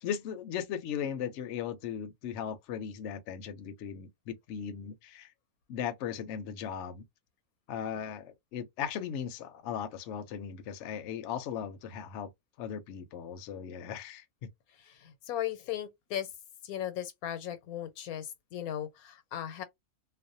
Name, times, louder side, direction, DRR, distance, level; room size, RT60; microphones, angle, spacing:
voice 1, 0.0-5.3 5.7-7.0 7.7-12.3 12.6-14.2, left 8 dB, 65° left, 0.8 m, -37 dB
voice 2, 14.8-16.3 16.6-19.6, left 11 dB, 85° left, 1.1 m, -37 dB
2.5 x 2.1 x 2.6 m
omnidirectional pair, 1.5 m